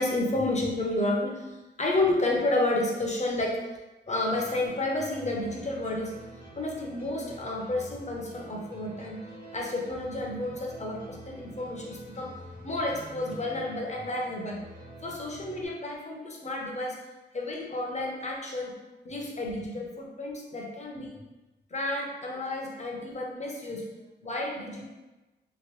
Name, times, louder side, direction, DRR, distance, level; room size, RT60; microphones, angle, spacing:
voice 1, 0.0-3.6 4.1-6.1 6.6-9.2 9.5-12.3 12.6-14.6 15.0-17.0 17.3-18.7 19.0-21.2 21.7-23.9 24.2-24.9, left 2 dB, 35° left, -1 dB, 0.6 m, -31 dB
sound 1, 4.3-15.7, right 1 dB, 50° right, 1.0 m, -47 dB
2.9 x 2.7 x 3.1 m, 1.1 s
wide cardioid pair, 105°, 19 cm